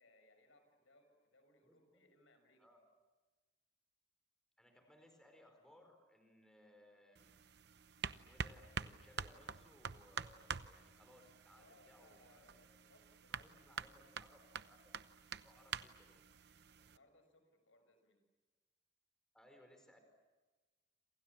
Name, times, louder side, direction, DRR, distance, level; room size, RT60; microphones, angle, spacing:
voice 1, 0.0-2.6 11.5-14.2 16.7-18.2, left 2 dB, 85° left, 8 dB, 6.8 m, -69 dB
voice 2, 4.6-7.3 8.0-12.8 13.3-15.0 15.3-16.2 19.3-20.0, left 1 dB, 5° left, 5 dB, 4.5 m, -65 dB
sound 1, 7.2-17.0, right 5 dB, 55° right, 0.9 m, -48 dB
28.5 x 27.5 x 7.3 m, 1.3 s
head